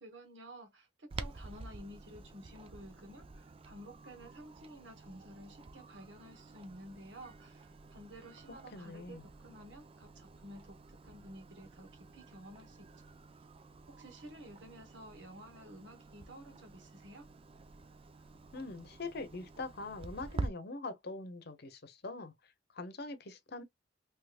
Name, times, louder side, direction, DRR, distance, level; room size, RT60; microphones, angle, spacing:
voice 1, 0.0-12.9 13.9-17.3, equal, 75° right, 1.2 m, -52 dB
Clock, 1.1-20.5, right 3 dB, 30° right, 0.4 m, -49 dB
voice 2, 8.7-9.3 18.5-23.6, left 3 dB, 60° left, 0.8 m, -43 dB
3.5 x 3.0 x 2.4 m
head